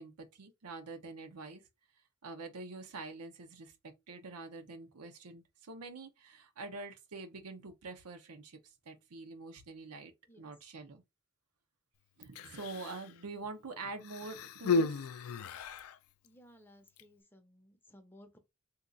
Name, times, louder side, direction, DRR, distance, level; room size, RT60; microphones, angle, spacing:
voice 1, 0.0-1.6 2.2-11.0 12.2-15.1, right 3 dB, 90° right, 0.7 m, -46 dB
Human voice, 12.2-13.1 14.0-16.0 16.9-17.0, left 4 dB, 70° left, 0.4 m, -34 dB
voice 2, 16.2-18.4, equal, 10° left, 0.6 m, -59 dB
2.8 x 2.4 x 3.8 m
head